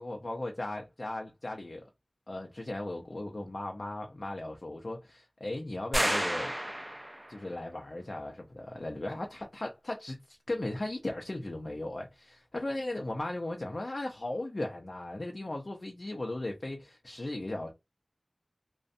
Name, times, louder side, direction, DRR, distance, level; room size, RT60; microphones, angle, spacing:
voice 1, 0.0-1.9 2.3-6.5 7.3-17.7, left 2 dB, 60° left, 0.4 m, -37 dB
sound 1, 5.9-7.4, equal, 15° right, 0.3 m, -31 dB
2.5 x 2.1 x 2.5 m
wide cardioid pair, 55°, 0 cm